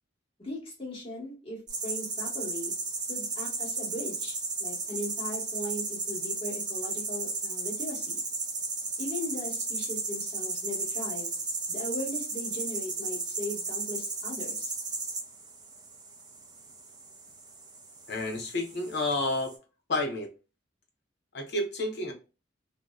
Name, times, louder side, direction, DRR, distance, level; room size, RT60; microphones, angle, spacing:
voice 1, 0.4-2.7 3.1-8.2 9.0-11.3 11.7-14.7, left 1 dB, 30° left, 1.4 m, -38 dB
sound 1, 1.7-19.5, right 3 dB, 20° right, 0.5 m, -35 dB
voice 2, 18.1-19.6 19.9-20.3 21.3-22.1, left 2 dB, 65° left, 0.7 m, -30 dB
2.6 x 2.1 x 2.2 m
head